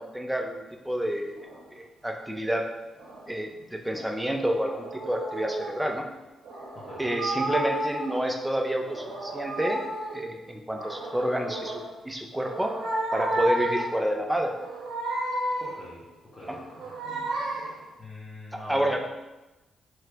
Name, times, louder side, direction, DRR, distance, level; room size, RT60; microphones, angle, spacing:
voice 1, 0.0-2.7 3.3-6.1 7.0-9.8 10.1-12.7 13.1-14.5 16.5-16.6 18.7-19.1, right 1 dB, 5° right, 2 dB, 0.4 m, -29 dB
sound 1, 1.4-1.7 3.0-3.3 3.9-5.8 6.4-8.3 8.7-10.2 10.7-11.9 12.3-14.0 14.5-15.9 16.4-17.8, right 1 dB, 90° right, 0.7 m, -32 dB
voice 2, 15.6-16.1 16.3-16.9 18.0-18.9, left 2 dB, 30° left, -7 dB, 0.7 m, -43 dB
2.9 x 2.2 x 3.3 m, 1.1 s
cardioid pair, 85°, 0 cm